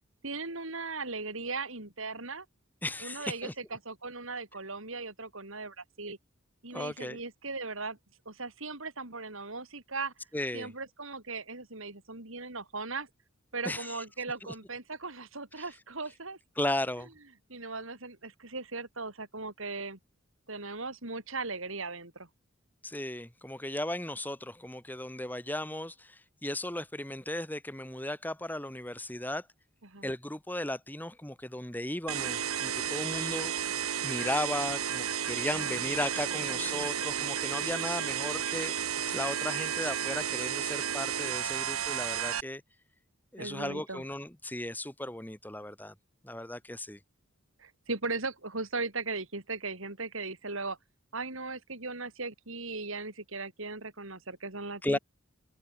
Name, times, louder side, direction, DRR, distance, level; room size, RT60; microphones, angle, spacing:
voice 1, 0.2-2.4 3.0-6.2 6.6-8.0 8.2-10.1 10.5-13.1 13.5-16.4 17.5-20.0 20.5-22.3 29.8-30.1 35.5-36.9 43.4-44.0 47.6-50.8 51.1-55.0, right 3 dB, 70° right, 4.7 m, -38 dB
voice 2, 2.8-3.5 6.7-7.2 10.3-10.7 13.7-14.0 15.6-15.7 16.6-17.1 22.8-29.5 30.0-33.5 34.0-42.6 43.3-45.9 46.2-47.0 54.8-55.0, left 1 dB, 10° left, 1.8 m, -36 dB
sound 1, 32.1-42.4, right 9 dB, 90° right, 1.4 m, -32 dB
head